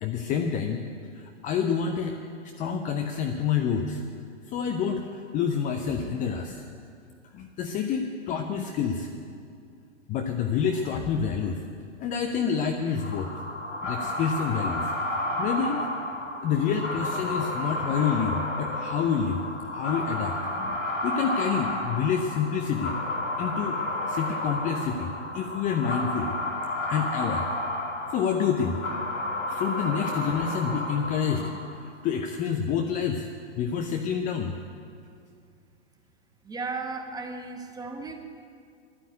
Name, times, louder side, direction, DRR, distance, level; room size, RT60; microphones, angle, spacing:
voice 1, 0.0-0.8 1.1-2.2 2.4-4.0 4.5-6.6 7.3-9.1 10.1-11.6 12.0-13.3 13.8-15.9 16.4-19.4 19.7-23.0 23.4-26.4 26.9-27.5 28.1-28.8 29.5-33.3 33.6-34.6, left 7 dB, 20° left, 5 dB, 0.6 m, -28 dB
sound 1, 13.0-31.9, left 1 dB, 90° left, 2.2 m, -31 dB
voice 2, 36.4-38.2, right 3 dB, 10° right, 4 dB, 1.2 m, -35 dB
11.5 x 9.2 x 9.3 m, 2.3 s
figure-of-eight pair, 110°, 36 cm